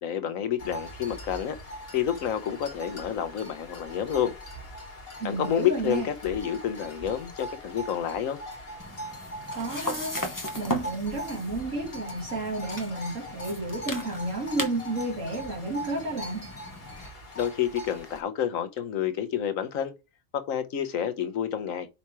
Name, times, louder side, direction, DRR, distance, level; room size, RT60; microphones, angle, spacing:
voice 1, 0.0-1.6 1.9-4.3 5.2-8.4 17.4-19.9 20.3-21.9, left 9 dB, 90° left, 1.3 m, -29 dB
sound 1, 0.6-18.2, equal, 45° left, 2.0 m, -41 dB
voice 2, 5.2-6.1 9.5-10.2 10.5-16.5, right 2 dB, 75° right, 2.4 m, -31 dB
sound 2, 8.8-17.1, equal, 15° left, 1.1 m, -37 dB
5.6 x 4.3 x 4.7 m
omnidirectional pair, 1.3 m